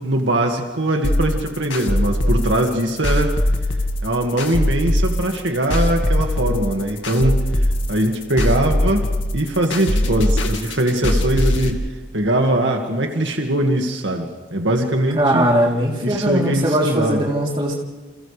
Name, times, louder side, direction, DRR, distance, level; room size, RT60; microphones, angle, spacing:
voice 1, 0.0-3.4 4.0-9.1 9.3-11.8 12.1-15.5 16.0-17.2, right 1 dB, 75° right, 2 dB, 2.0 m, -21 dB
sound 1, 1.0-11.7, left 1 dB, 80° left, 2.1 m, -20 dB
voice 2, 15.2-17.7, right 1 dB, 25° right, -3 dB, 3.4 m, -19 dB
30.0 x 28.0 x 3.4 m, 1.3 s
head